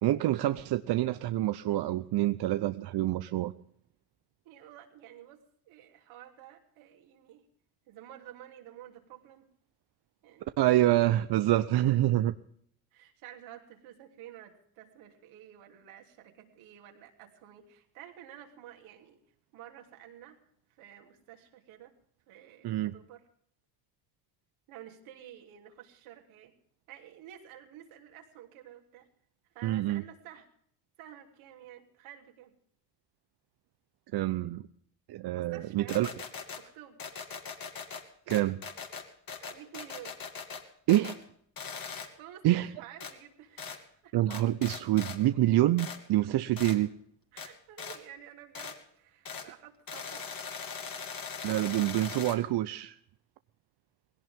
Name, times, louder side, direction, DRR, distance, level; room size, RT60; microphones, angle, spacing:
voice 1, 0.0-3.5 10.6-12.3 22.6-22.9 29.6-30.0 34.1-34.6 35.1-36.1 38.3-38.6 40.9-41.2 42.4-42.7 44.1-46.9 51.4-52.9, right 14 dB, 50° right, 11 dB, 0.8 m, -26 dB
voice 2, 4.4-7.5 7.9-9.5 10.2-10.6 12.9-19.2 19.5-20.4 20.7-21.9 22.3-23.2 24.7-26.5 26.9-29.1 29.5-30.5 31.0-32.5 35.3-36.1 36.5-37.0 39.4-40.1 41.8-44.1 47.3-50.3, right 11 dB, 70° right, 2 dB, 3.2 m, -51 dB
sound 1, 35.9-36.6 37.0-38.0 38.3-40.6 40.9-41.2 41.6-42.1 43.0-43.1 43.6-43.8 44.3-45.2 45.8-46.0 46.6-46.8 47.4-47.5 47.8-48.0 48.5-48.8 49.2-49.5 49.9-52.4, left 6 dB, 45° left, 3.0 m, -40 dB
19.5 x 17.0 x 3.6 m, 0.66 s
hypercardioid pair, 70°, 50 cm